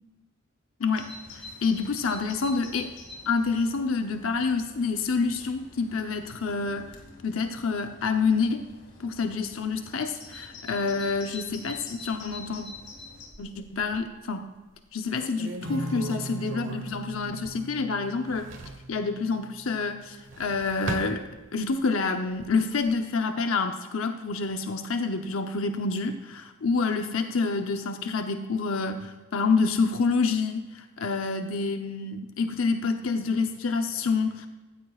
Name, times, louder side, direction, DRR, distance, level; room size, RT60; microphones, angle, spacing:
voice 1, 0.8-2.9 3.3-6.9 7.2-8.6 9.0-12.7 13.4-14.5 14.9-18.5 18.9-21.2 21.5-34.5, left 4 dB, 85° left, 6 dB, 0.8 m, -28 dB
Bird vocalization bird call bird song, 0.9-13.3, left 2 dB, 55° left, 2.3 m, -46 dB
sound 1, 13.2-14.2 14.7-14.8 15.1-17.8 18.1-18.9 20.0-21.8 22.2-22.9, right 2 dB, 65° right, 1.2 m, -40 dB
Acoustic guitar / Strum, 15.6-20.1, right 1 dB, 85° right, 4.5 m, -39 dB
16.0 x 14.5 x 2.4 m, 1.2 s
head